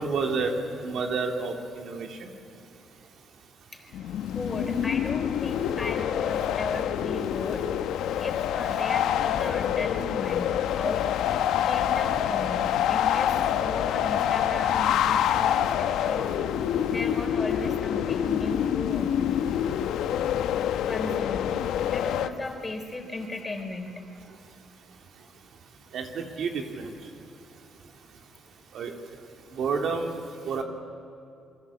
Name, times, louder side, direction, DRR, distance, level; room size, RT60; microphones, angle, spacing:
voice 1, 0.0-2.3 25.9-26.1 26.4-26.9 28.7-28.9 29.6-30.2 30.5-30.6, right 4 dB, 70° right, 3 dB, 3.1 m, -29 dB
sound 1, 3.9-22.3, left 10 dB, 85° left, 1.1 m, -26 dB
voice 2, 4.2-7.7 8.2-11.0 11.6-16.3 16.9-19.2 20.9-21.5 21.9-24.0, left 2 dB, 25° left, 4 dB, 3.9 m, -36 dB
28.0 x 23.0 x 8.7 m, 2.7 s
cardioid pair, 90°, 0 cm